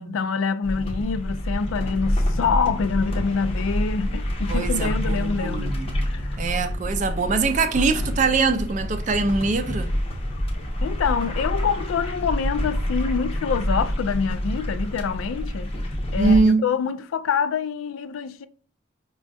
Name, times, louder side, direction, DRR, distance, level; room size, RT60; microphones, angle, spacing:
voice 1, 0.0-5.8 6.1-6.3 10.8-15.7 16.1-18.5, left 6 dB, 85° left, 0.3 m, -26 dB
sound 1, 0.6-16.4, equal, 30° left, 0.6 m, -27 dB
voice 2, 4.5-6.1 6.4-9.9 16.2-16.6, right 4 dB, 35° right, 0.4 m, -23 dB
5.1 x 2.3 x 2.6 m
head